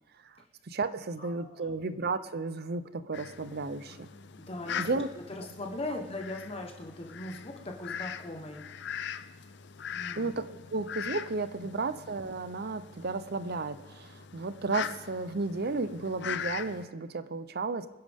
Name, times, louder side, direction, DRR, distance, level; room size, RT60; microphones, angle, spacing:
voice 1, 0.6-4.1 4.8-5.1 5.9-6.0 10.2-10.5 10.7-17.9, right 3 dB, 55° right, 13 dB, 0.7 m, -33 dB
voice 2, 1.2-1.7 4.4-5.0 5.4-8.7 9.9-10.3 11.6-11.7, left 2 dB, 30° left, 2 dB, 1.1 m, -40 dB
Fowl, 3.1-16.8, left 8 dB, 60° left, 0.6 m, -41 dB
25.0 x 10.5 x 3.6 m, 1.3 s
head